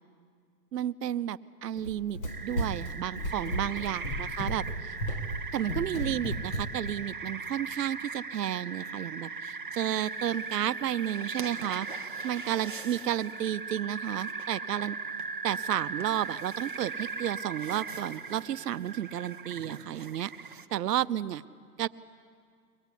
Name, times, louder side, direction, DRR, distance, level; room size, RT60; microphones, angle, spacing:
voice 1, 0.7-5.0 5.5-11.9 12.2-15.0 15.4-20.3 20.7-21.4 21.8-21.9, right 11 dB, 70° right, 16 dB, 0.7 m, -32 dB
Run, 1.8-7.0, equal, 35° left, 1.2 m, -34 dB
sound 1, 2.3-20.7, right 4 dB, 35° right, 0.5 m, -39 dB
23.0 x 19.5 x 8.3 m, 2.1 s
hypercardioid pair, 175°, 50 cm